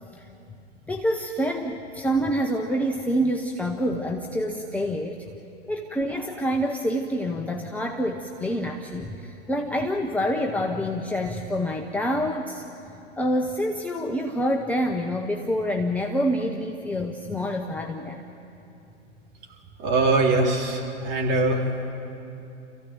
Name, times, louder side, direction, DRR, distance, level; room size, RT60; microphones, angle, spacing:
voice 1, 0.9-5.3 5.7-12.6 13.2-18.2, equal, 5° left, 2 dB, 0.8 m, -27 dB
voice 2, 19.8-21.7, right 2 dB, 30° right, -2 dB, 4.2 m, -22 dB
28.0 x 15.0 x 9.2 m, 2.7 s
hypercardioid pair, 120°, 36 cm